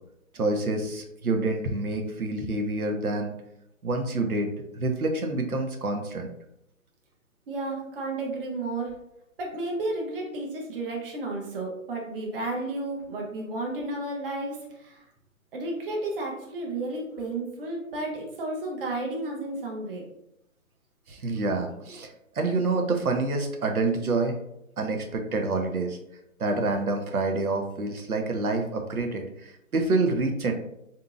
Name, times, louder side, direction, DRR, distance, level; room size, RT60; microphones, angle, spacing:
voice 1, 0.3-3.3 3.8-6.3 21.1-24.4 24.8-26.0 26.4-30.5, right 3 dB, 90° right, 3 dB, 0.8 m, -27 dB
voice 2, 7.5-8.9 9.4-15.1 15.5-20.0, right 2 dB, 40° right, -1 dB, 0.8 m, -32 dB
3.9 x 2.7 x 2.4 m, 0.83 s
figure-of-eight pair, 140°, 42 cm